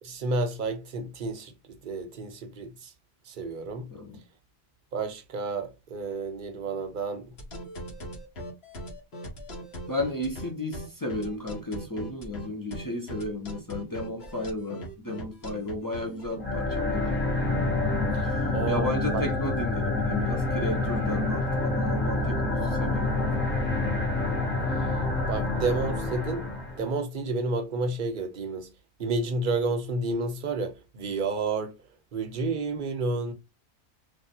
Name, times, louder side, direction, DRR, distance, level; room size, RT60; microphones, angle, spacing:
voice 1, 0.0-2.9 3.2-3.9 4.9-7.3 18.1-19.2 24.8-24.9 25.3-28.7 29.0-31.7 32.1-33.3, right 3 dB, 50° right, 0.7 m, -31 dB
sound 1, 7.4-16.4, equal, 65° left, 1.3 m, -39 dB
voice 2, 9.9-17.2 18.2-23.2, left 1 dB, 30° left, 0.4 m, -34 dB
sound 2, 16.3-26.8, left 2 dB, 10° left, 0.8 m, -27 dB
3.2 x 2.7 x 2.7 m
omnidirectional pair, 1.2 m